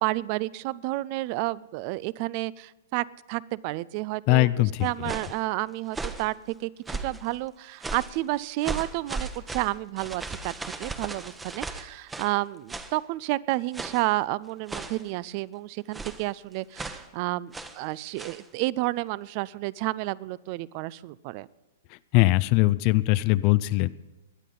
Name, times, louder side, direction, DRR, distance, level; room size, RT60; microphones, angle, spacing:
voice 1, 0.0-10.5 10.8-21.5, right 19 dB, 40° right, 22 dB, 0.4 m, -31 dB
voice 2, 4.3-4.9 22.1-23.9, left 19 dB, 40° left, 16 dB, 0.4 m, -21 dB
sound 1, 4.8-5.4 5.9-6.3 6.8-7.3 7.8-8.2 8.6-12.4 12.7-13.0 13.7-14.1 14.7-15.1 15.9-16.3 16.7-17.1 17.5-17.8 18.2-18.4, right 3 dB, 10° right, 0.9 m, -36 dB
21.0 x 9.9 x 3.9 m, 1.1 s
figure-of-eight pair, 110°, 0 cm